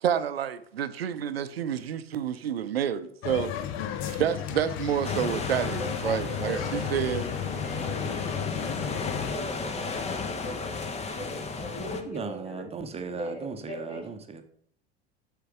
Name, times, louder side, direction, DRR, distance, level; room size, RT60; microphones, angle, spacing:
voice 1, 0.0-3.5 4.1-7.2, right 9 dB, 70° right, 0.7 m, -29 dB
sound 1, 3.2-9.3, left 10 dB, 40° left, 0.9 m, -34 dB
sound 2, 5.0-12.0, left 4 dB, 20° left, 1.1 m, -34 dB
voice 2, 5.7-10.0 10.4-12.7 13.1-14.1, left 1 dB, 75° left, 3.0 m, -39 dB
voice 3, 12.1-14.4, right 5 dB, 20° right, 1.0 m, -37 dB
8.0 x 6.7 x 4.9 m
figure-of-eight pair, 75°, 31 cm